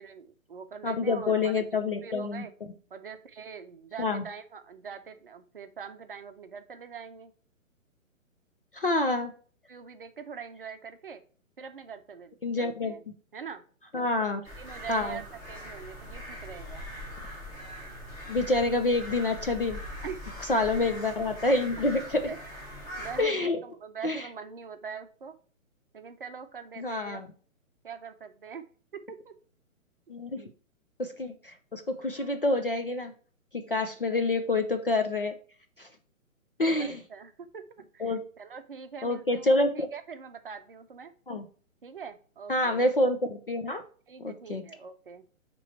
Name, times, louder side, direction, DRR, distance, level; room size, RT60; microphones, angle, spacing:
voice 1, 0.0-1.5 2.0-2.5 2.9-7.3 9.7-11.2 11.6-13.0 13.3-13.6 14.0-14.3 14.6-16.8 20.0-20.2 21.7-21.8 22.3-22.4 23.0-25.3 25.9-27.2 27.8-28.6 28.9-29.3 30.4-30.5 36.8-41.1 41.8-42.9 44.1-45.2, right 6 dB, 40° right, 7 dB, 0.6 m, -43 dB
voice 2, 0.8-2.5 4.0-4.2 8.7-9.3 12.4-12.9 13.9-14.4 14.9-15.2 18.3-19.8 20.5-22.3 23.2-23.6 24.0-24.2 26.8-27.3 30.1-30.5 31.0-33.1 33.5-35.4 35.8-35.9 36.6-37.0 38.0-38.2 39.0-39.9 41.3-41.4 42.5-43.8 44.2-44.6, left 2 dB, 40° left, 6 dB, 0.5 m, -27 dB
sound 1, 14.4-23.2, equal, 15° left, 1.7 m, -42 dB
8.3 x 3.1 x 4.2 m, 0.42 s
hypercardioid pair, 175°, 42 cm